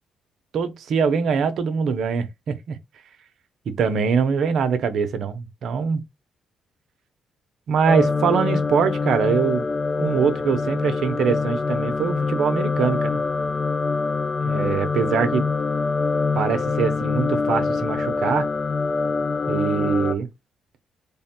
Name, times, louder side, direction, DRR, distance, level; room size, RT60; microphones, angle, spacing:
voice 1, 0.5-2.8 3.7-6.0 7.7-9.6 10.0-13.2 14.4-15.5 16.3-18.5 19.5-20.3, right 6 dB, 65° right, 0.6 m, -23 dB
sound 1, 7.9-20.2, left 4 dB, 30° left, 0.5 m, -24 dB
3.4 x 2.2 x 4.1 m
cardioid pair, 90°, 0 cm